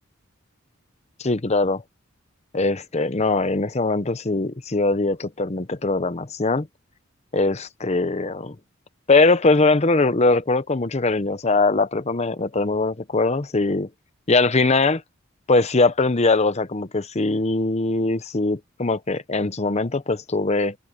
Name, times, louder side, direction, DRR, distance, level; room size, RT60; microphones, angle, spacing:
voice 1, 1.2-1.8 2.5-6.7 7.3-8.6 9.1-13.9 14.3-15.0 15.5-20.8, left 3 dB, 30° left, 0.8 m, -21 dB
open air
head